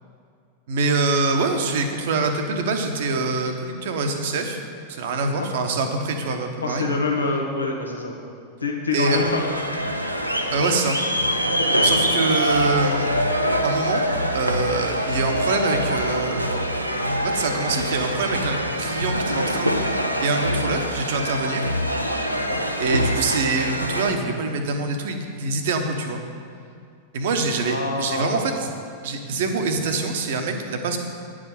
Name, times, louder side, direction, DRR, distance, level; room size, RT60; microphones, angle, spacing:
voice 1, 0.7-4.6 4.9-6.9 8.9-9.2 10.5-11.0 11.8-13.1 13.6-14.0 14.3-16.6 17.2-21.6 22.8-26.2 27.1-28.7 29.0-31.0, right 3 dB, 55° right, 5 dB, 0.9 m, -25 dB
voice 2, 6.6-8.2 8.6-9.4 11.6-11.8 22.3-22.6 27.6-28.5, left 3 dB, 80° left, 0 dB, 1.1 m, -26 dB
sound 1, 9.0-24.1, equal, 90° right, 0.6 m, -24 dB
9.6 x 5.0 x 7.6 m, 2.3 s
figure-of-eight pair, 90°, 0 cm